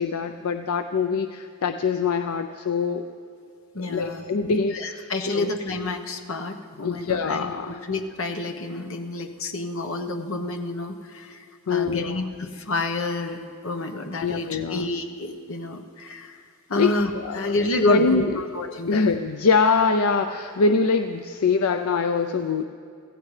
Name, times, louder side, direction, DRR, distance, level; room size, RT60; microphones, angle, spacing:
voice 1, 0.0-3.1 3.8-5.1 5.3-5.5 6.8-7.8 11.7-12.2 14.2-14.9 16.8-18.3 18.9-22.6, left 4 dB, 80° left, 8 dB, 0.5 m, -24 dB
voice 2, 3.7-4.2 4.7-16.4 16.7-19.0, left 2 dB, 65° left, 4 dB, 1.0 m, -29 dB
24.5 x 16.0 x 3.3 m, 2.4 s
head